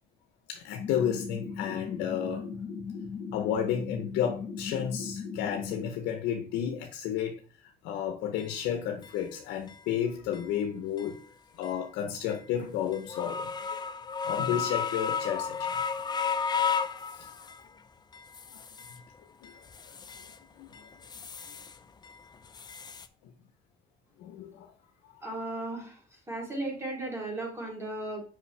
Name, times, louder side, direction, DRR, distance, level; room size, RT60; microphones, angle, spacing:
voice 1, 0.5-2.5 3.3-11.2 11.5-13.8 14.2-15.7 16.9-17.4 18.5-18.6 19.4-20.7 23.2-23.3 24.2-24.7, left 9 dB, 85° left, 6 dB, 0.6 m, -32 dB
sound 1, 0.8-5.9, left 5 dB, 50° left, 1.3 m, -38 dB
sound 2, 8.4-8.5 9.0-9.1 9.7-9.8 10.3-10.5 11.0-11.2 11.6-11.8 12.3-12.4 12.9-17.7 18.1-19.0 19.4-20.4 20.7-21.8 22.0-23.1, left 6 dB, 25° left, 0.5 m, -34 dB
voice 2, 25.2-26.0 26.3-28.2, right 2 dB, 15° right, -1 dB, 2.6 m, -35 dB
5.6 x 5.2 x 3.2 m, 0.41 s
cardioid pair, 110°, 17 cm